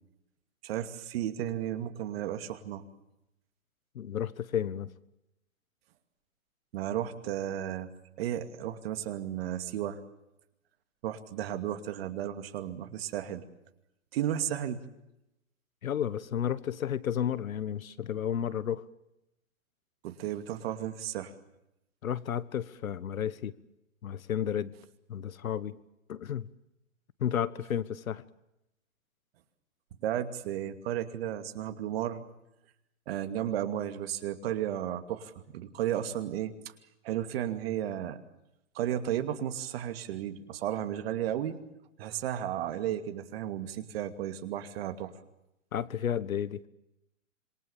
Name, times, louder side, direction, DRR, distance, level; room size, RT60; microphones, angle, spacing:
voice 1, 0.6-2.8 6.7-7.9 8.2-10.0 11.0-13.4 14.1-14.8 20.0-21.3 30.0-32.2 33.1-36.5 37.0-38.2 38.7-41.6 42.0-45.1, right 11 dB, 45° right, 8 dB, 2.5 m, -33 dB
voice 2, 3.9-4.9 15.8-18.8 22.0-23.5 24.0-24.7 25.1-25.8 26.1-26.5 27.2-28.2 45.7-46.6, left 9 dB, 80° left, 18 dB, 1.5 m, -32 dB
26.5 x 23.0 x 7.2 m, 0.88 s
hypercardioid pair, 145°, 41 cm